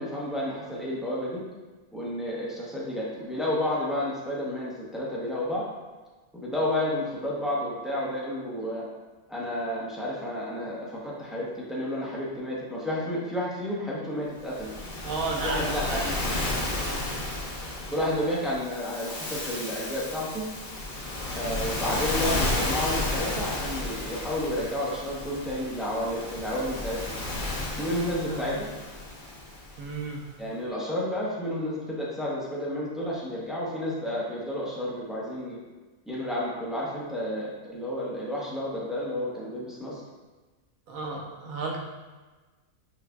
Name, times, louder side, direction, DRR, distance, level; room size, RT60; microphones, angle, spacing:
voice 1, 0.0-1.4 1.9-5.7 6.3-8.9 9.3-14.7 15.4-16.0 17.8-20.4 21.3-27.1 27.8-28.7 30.4-35.6 36.1-40.0, left 1 dB, ahead, -6 dB, 0.4 m, -31 dB
Waves surf, 14.4-29.9, left 2 dB, 45° left, 0.8 m, -32 dB
voice 2, 15.0-16.2 16.7-17.1 28.3-28.7 29.8-30.2 40.9-41.8, right 3 dB, 90° right, 0 dB, 1.1 m, -33 dB
6.8 x 2.6 x 2.2 m, 1.3 s
omnidirectional pair, 1.4 m